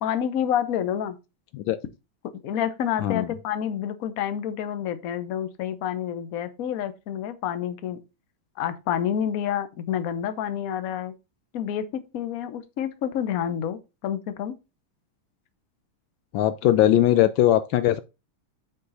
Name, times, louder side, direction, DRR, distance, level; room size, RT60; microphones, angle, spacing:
voice 1, 0.0-1.2 2.3-8.0 8.6-11.1 11.5-14.5, left 9 dB, 55° left, 1.1 m, -28 dB
voice 2, 16.3-18.0, left 12 dB, 75° left, 1.3 m, -20 dB
7.9 x 4.8 x 4.0 m
omnidirectional pair, 2.2 m